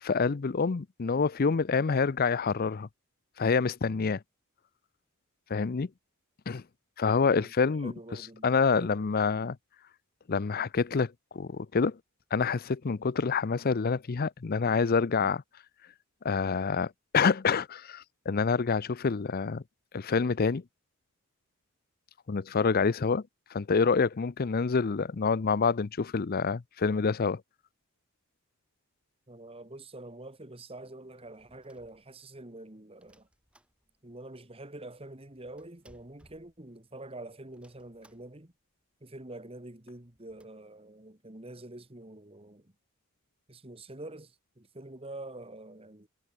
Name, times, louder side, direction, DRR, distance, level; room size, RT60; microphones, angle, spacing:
voice 1, 0.0-2.9 3.4-4.2 5.5-5.9 6.5-6.6 7.0-7.9 8.4-9.6 10.3-12.0 12.3-15.4 16.2-19.6 19.9-20.6 22.3-23.2 23.5-27.4, left 5 dB, 40° left, 0.5 m, -27 dB
voice 2, 7.3-8.5 8.8-9.1 29.3-33.3 34.0-38.5 39.0-42.7 43.5-46.1, right 2 dB, 25° right, 1.9 m, -46 dB
sound 1, 31.1-32.5 33.0-34.2 34.5-34.6 34.8-37.1 37.5-38.6 38.9-39.0 39.2-39.4 39.9-40.5, equal, 5° right, 5.7 m, -65 dB
head